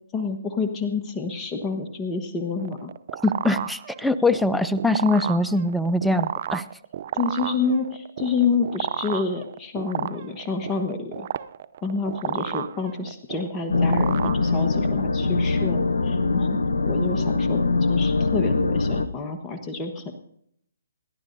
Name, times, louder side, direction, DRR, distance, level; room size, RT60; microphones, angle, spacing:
voice 1, 0.1-2.9 7.1-11.3 11.8-16.6 16.8-20.1, left 4 dB, 15° left, 4 dB, 1.3 m, -28 dB
sound 1, 2.6-15.0, right 10 dB, 50° right, 0.6 m, -32 dB
voice 2, 3.2-6.6, left 2 dB, ahead, 12 dB, 0.5 m, -22 dB
sound 2, 13.7-19.1, left 3 dB, 80° left, 1.0 m, -22 dB
27.5 x 11.5 x 2.7 m, 0.71 s
hypercardioid pair, 145°, 0 cm